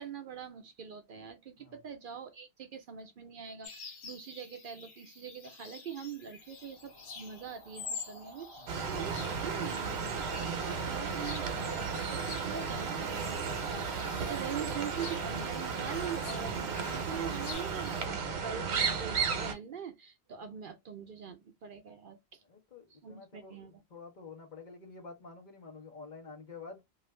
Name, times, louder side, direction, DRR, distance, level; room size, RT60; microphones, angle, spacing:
voice 1, 0.0-22.4 22.9-23.8, right 7 dB, 60° right, 0.7 m, -43 dB
sound 1, 3.6-18.1, left 5 dB, 85° left, 1.1 m, -48 dB
sound 2, 6.4-17.5, right 1 dB, 30° right, 0.7 m, -52 dB
sound 3, 8.7-19.5, right 5 dB, 90° right, 0.9 m, -34 dB
voice 2, 22.4-26.8, left 4 dB, 50° left, 1.0 m, -49 dB
2.5 x 2.4 x 3.1 m
omnidirectional pair, 1.0 m